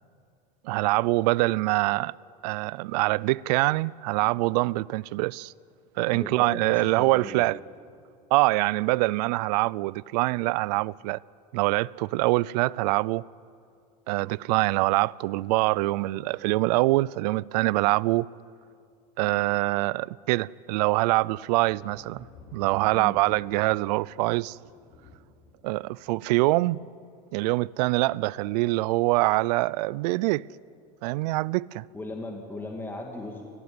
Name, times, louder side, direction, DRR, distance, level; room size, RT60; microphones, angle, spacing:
voice 1, 0.6-2.1 2.4-5.5 6.0-7.6 8.3-11.2 11.5-13.2 14.1-18.3 19.2-22.3 22.5-24.6 25.6-26.8 27.3-30.4 31.0-31.9, right 21 dB, 75° right, 0.5 m, -24 dB
voice 2, 6.1-7.5 15.9-16.2 22.9-23.2 31.9-33.4, left 2 dB, 10° left, 2.4 m, -38 dB
sound 1, 21.2-26.6 27.8-28.1, left 4 dB, 50° left, 6.8 m, -54 dB
23.0 x 18.5 x 9.7 m
supercardioid pair, 125°, 21 cm